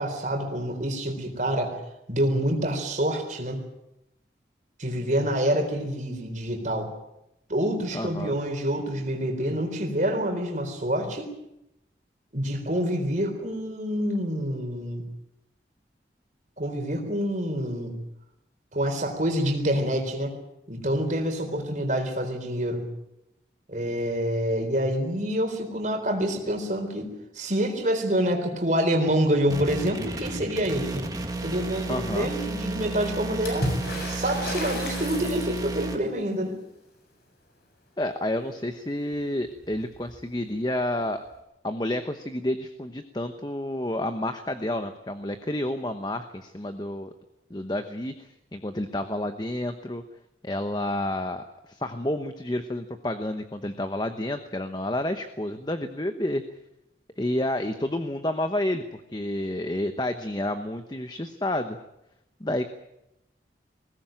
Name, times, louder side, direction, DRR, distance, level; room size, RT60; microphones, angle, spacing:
voice 1, 0.0-1.8 2.1-3.6 4.8-6.9 7.5-11.3 12.3-15.1 16.6-18.0 18.7-20.4 20.7-22.9 23.7-31.1 31.4-33.7 34.1-36.6, equal, 45° right, 4 dB, 3.9 m, -27 dB
voice 2, 7.9-8.4 31.9-32.3 38.0-41.2 41.6-47.1 47.5-50.0 50.4-56.4 57.2-61.8 62.4-62.7, left 1 dB, 25° left, 8 dB, 1.0 m, -30 dB
sound 1, 29.5-36.0, right 3 dB, 20° right, 2.0 m, -33 dB
Water / Splash splatter, 33.4-35.8 39.1-39.2 39.5-40.2 41.3-41.4, left 1 dB, 60° left, 7.2 m, -33 dB
21.0 x 18.0 x 9.1 m, 0.87 s
head